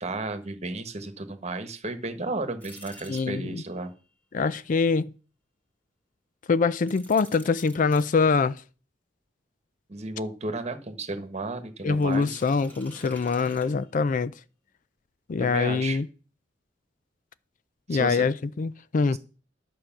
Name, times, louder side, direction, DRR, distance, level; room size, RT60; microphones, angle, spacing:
voice 1, 0.0-3.9 9.9-12.4 15.4-16.0 17.9-18.2 19.1-19.2, right 2 dB, 40° right, 1.3 m, -33 dB
sound 1, 2.6-3.8 6.8-8.1 12.0-14.3, equal, 10° left, 2.0 m, -49 dB
voice 2, 3.1-3.6 4.3-5.1 6.5-8.6 11.8-14.3 15.3-16.1 17.9-19.2, left 4 dB, 45° left, 0.4 m, -24 dB
11.5 x 6.2 x 5.8 m
head